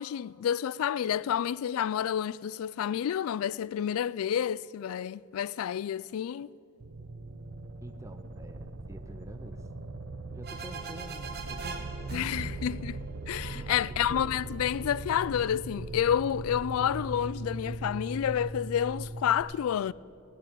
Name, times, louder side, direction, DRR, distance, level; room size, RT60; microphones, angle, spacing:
voice 1, 0.0-6.5 12.1-13.0 13.3-19.9, left 9 dB, 85° left, 0.3 m, -29 dB
sound 1, 6.8-19.4, right 2 dB, 75° right, 0.8 m, -40 dB
voice 2, 7.8-9.7 10.2-12.8 13.9-14.4, right 1 dB, 15° right, 0.5 m, -48 dB
sound 2, 10.4-14.1, right 3 dB, 45° right, 1.2 m, -41 dB
Piano, 13.4-15.7, left 1 dB, 70° left, 2.5 m, -55 dB
18.0 x 6.8 x 9.2 m
head